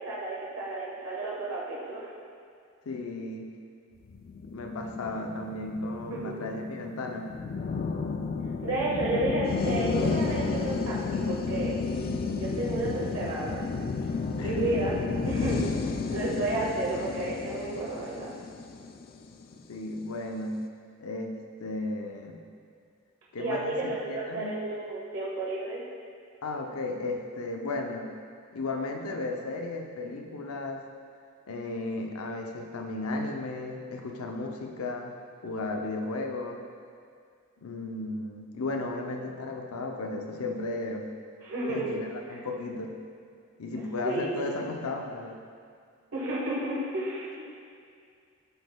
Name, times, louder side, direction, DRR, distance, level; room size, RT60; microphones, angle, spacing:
voice 1, 0.0-2.1 6.1-6.3 8.6-11.8 12.3-13.6 14.4-15.0 15.2-15.6 16.1-18.3 23.4-25.8 41.4-41.9 43.7-44.4 46.1-47.4, right 2 dB, 85° right, -6 dB, 1.3 m, -32 dB
voice 2, 2.9-3.5 4.4-7.3 14.4-14.9 16.2-16.3 19.5-20.6 21.0-22.4 23.3-23.7 24.1-24.6 26.4-28.1 28.5-30.8 31.5-35.1 35.4-36.6 37.6-41.1 41.7-43.0 43.6-45.4, left 2 dB, 90° left, 2 dB, 0.6 m, -34 dB
sound 1, 4.1-19.6, left 4 dB, 45° left, 0.3 m, -32 dB
12.0 x 4.0 x 2.3 m, 2.3 s
head